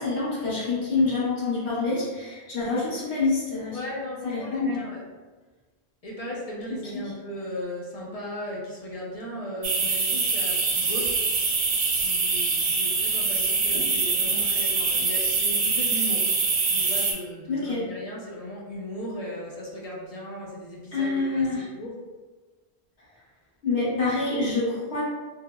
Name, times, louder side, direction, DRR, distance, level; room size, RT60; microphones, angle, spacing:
voice 1, 0.0-3.8 4.2-4.8 6.9-7.1 17.5-17.8 20.9-21.7 23.6-25.0, left 3 dB, 85° left, -9 dB, 1.4 m, -26 dB
voice 2, 3.7-5.0 6.0-11.1 12.0-16.2 16.7-22.0, equal, 50° left, -3 dB, 0.4 m, -37 dB
sound 1, 9.6-17.1, right 4 dB, 80° right, 0.8 m, -24 dB
3.3 x 2.0 x 2.2 m, 1.3 s
omnidirectional pair, 1.1 m